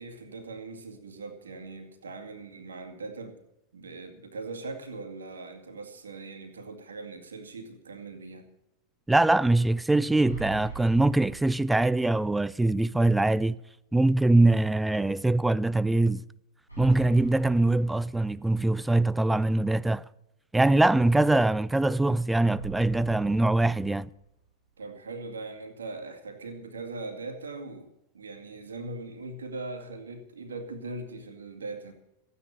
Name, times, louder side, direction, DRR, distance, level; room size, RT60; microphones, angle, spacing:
voice 1, 0.0-3.4 3.7-8.5 24.8-31.9, right 3 dB, 70° right, 2.3 m, -40 dB
voice 2, 9.1-13.6 13.9-16.2 16.8-20.0 20.5-24.1, right 2 dB, 5° right, 0.4 m, -23 dB
sound 1, 10.2-12.2 12.6-12.7 16.7-18.7 22.5-24.5, right 5 dB, 85° left, 4.3 m, -43 dB
15.0 x 9.7 x 6.9 m
figure-of-eight pair, 90°, 0 cm